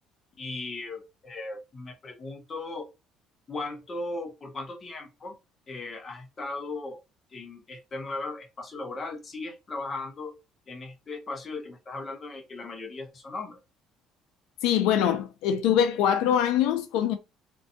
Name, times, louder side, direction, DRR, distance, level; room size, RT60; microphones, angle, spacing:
voice 1, 0.4-2.9 3.5-5.3 5.7-7.0 7.3-10.3 10.7-13.6, left 3 dB, 20° left, 0.7 m, -37 dB
voice 2, 14.6-17.2, left 9 dB, 85° left, 0.4 m, -23 dB
2.6 x 2.2 x 2.6 m
cardioid pair, 170°, 0 cm